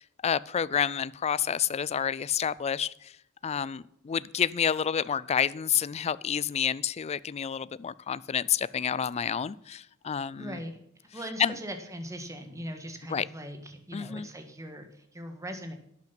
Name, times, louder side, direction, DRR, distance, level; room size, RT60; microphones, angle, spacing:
voice 1, 0.0-3.1 3.4-10.6 11.4-11.6 13.1-13.3 13.9-14.3, left 8 dB, 30° left, 20 dB, 0.3 m, -29 dB
voice 2, 10.4-10.8 11.1-15.7, equal, 15° right, 6 dB, 1.6 m, -40 dB
12.0 x 9.0 x 5.8 m, 0.76 s
head